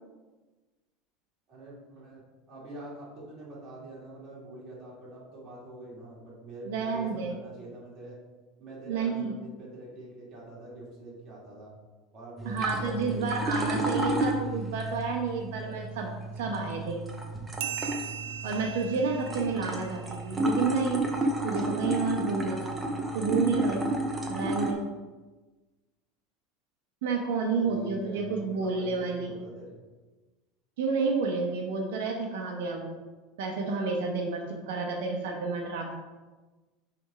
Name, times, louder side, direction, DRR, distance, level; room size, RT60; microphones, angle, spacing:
voice 1, 1.5-2.2 2.5-8.2 8.6-11.7 12.1-13.8 27.6-29.8, right 1 dB, 25° right, -5 dB, 2.0 m, -45 dB
voice 2, 6.7-7.3 8.8-9.3 12.4-17.0 18.4-22.7 23.1-23.9 24.3-24.8 27.0-29.3 30.8-33.0 33.4-35.9, right 4 dB, 85° right, 1 dB, 1.0 m, -30 dB
sound 1, 12.4-24.7, right 1 dB, 5° right, 0.6 m, -32 dB
sound 2, 17.6-20.7, right 10 dB, 65° right, 0.3 m, -39 dB
6.3 x 3.5 x 4.9 m, 1.2 s
supercardioid pair, 175°, 0 cm